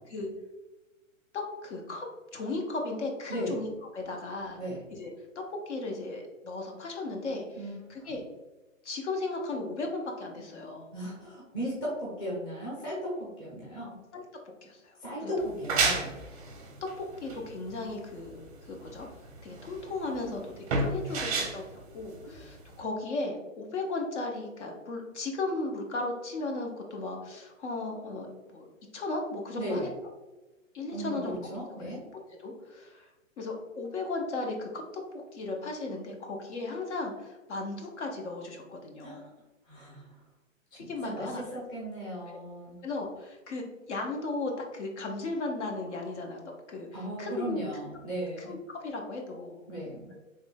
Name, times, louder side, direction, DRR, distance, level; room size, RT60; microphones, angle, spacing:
voice 1, 1.3-2.1 2.3-4.6 4.9-8.3 8.8-10.9 14.1-14.2 14.6-15.3 15.9-16.2 17.0-19.1 19.4-20.4 20.8-28.7 28.9-29.9 30.7-31.5 31.8-31.9 32.4-33.1 33.4-39.3 40.7-41.4 42.3-42.4 42.8-46.4 46.7-47.6 48.4-49.6 50.1-50.2, left 2 dB, 60° left, 1 dB, 0.9 m, -36 dB
voice 2, 7.6-8.1 10.9-14.0 15.0-16.1 20.2-20.3 29.6-29.9 30.9-32.0 39.0-39.2 39.7-40.0 41.0-42.8 46.9-48.5 49.7-50.1, equal, 10° left, -7 dB, 0.7 m, -36 dB
sound 1, 15.4-22.8, right 3 dB, 30° right, 0.6 m, -32 dB
3.7 x 3.2 x 2.2 m, 1.1 s
hypercardioid pair, 155°, 40 cm